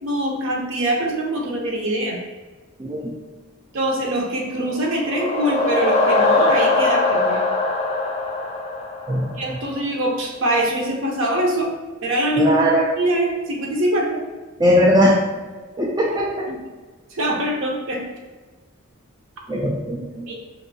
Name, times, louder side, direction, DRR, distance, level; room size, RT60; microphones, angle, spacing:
voice 1, 0.0-2.2 3.7-7.4 9.4-11.7 12.0-12.5 13.0-14.2 16.5-16.6 17.1-18.0 20.3-20.4, right 1 dB, 60° right, 0 dB, 0.7 m, -23 dB
voice 2, 2.8-3.1 9.1-9.3 12.4-12.9 14.6-15.2 15.8-16.5 19.5-20.3, equal, 20° right, -3 dB, 0.3 m, -19 dB
sound 1, 4.6-9.5, left 2 dB, 30° left, 0.5 m, -21 dB
4.9 x 2.6 x 2.7 m, 1.3 s
head